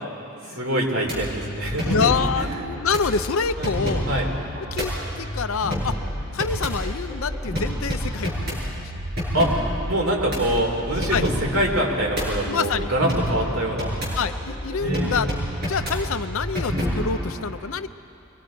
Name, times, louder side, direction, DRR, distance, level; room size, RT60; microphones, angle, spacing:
voice 1, 0.5-2.0 2.4-2.6 3.6-3.7 4.1-4.3 9.3-9.5 9.9-13.9 14.8-15.2, right 1 dB, 80° right, -1 dB, 3.2 m, -25 dB
sound 1, 1.0-17.3, equal, 50° right, 6.7 m, -29 dB
voice 2, 1.8-4.1 4.7-6.0 6.3-8.9 11.1-11.3 12.5-12.9 14.2-15.3 15.6-17.9, left 5 dB, 75° left, 10 dB, 0.6 m, -26 dB
24.5 x 21.0 x 5.2 m, 2.8 s
head